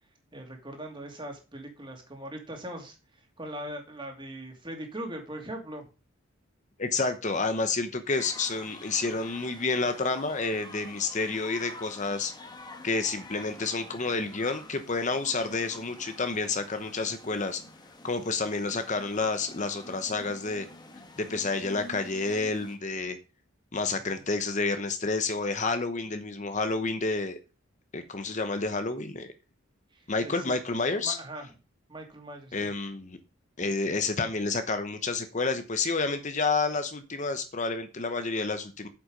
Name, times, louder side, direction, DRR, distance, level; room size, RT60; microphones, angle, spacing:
voice 1, 0.3-3.0 3.4-5.8 23.9-24.2 29.9-30.5 31.0-31.5 31.9-32.7, right 1 dB, 25° right, 2 dB, 2.8 m, -40 dB
voice 2, 6.8-12.3 12.8-17.6 18.0-20.7 21.2-23.2 23.7-27.4 27.9-29.3 30.1-31.2 32.5-33.2 33.6-38.9, left 3 dB, 35° left, 9 dB, 1.0 m, -29 dB
sound 1, 8.2-22.8, left 2 dB, 20° left, 1.4 m, -48 dB
8.5 x 7.8 x 5.2 m, 0.31 s
head